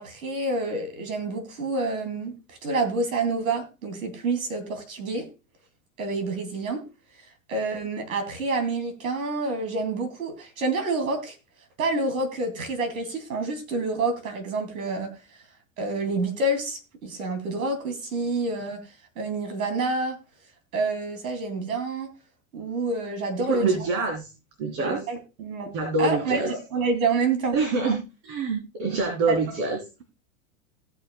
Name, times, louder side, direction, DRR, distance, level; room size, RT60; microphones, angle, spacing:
voice 1, 0.0-2.3 2.6-5.3 6.0-6.8 7.5-11.4 11.8-15.1 15.8-18.8 19.2-20.1 20.7-22.1 22.5-23.8 24.8-25.7 26.0-27.6 29.3-29.4, right 3 dB, 85° right, 8 dB, 2.9 m, -28 dB
voice 2, 23.5-24.3 24.6-25.0 25.7-26.5 27.5-29.8, right 3 dB, 50° right, 1 dB, 3.8 m, -25 dB
18.0 x 6.6 x 2.3 m, 0.30 s
hypercardioid pair, 105°, 41 cm